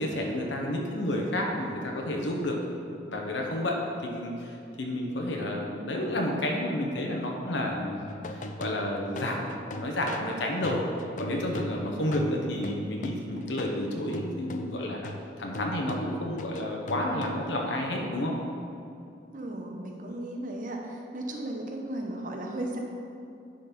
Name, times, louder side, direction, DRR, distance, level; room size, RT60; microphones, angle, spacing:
voice 1, 0.0-2.6 3.1-10.8 11.2-15.1 15.4-18.3, left 1 dB, 80° left, 0 dB, 1.0 m, -30 dB
sound 1, 8.1-13.8 14.1-17.7, left 1 dB, 40° left, 0.4 m, -39 dB
voice 2, 19.3-22.8, right 1 dB, 45° right, 0 dB, 0.9 m, -35 dB
10.0 x 4.0 x 5.3 m, 2.6 s
head